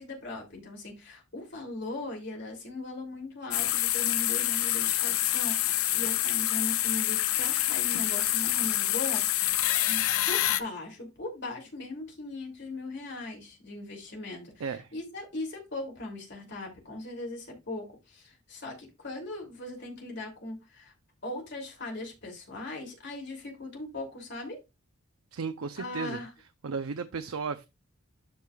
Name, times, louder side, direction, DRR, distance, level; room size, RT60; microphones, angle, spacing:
voice 1, 0.0-9.6 9.8-20.9 21.2-24.6 25.8-26.3, left 2 dB, 55° left, 2.8 m, -39 dB
sound 1, 3.5-10.6, left 14 dB, 85° left, 0.5 m, -27 dB
voice 2, 14.6-14.9 25.3-26.2 26.6-27.7, right 5 dB, 90° right, 0.5 m, -34 dB
13.0 x 4.7 x 2.3 m
head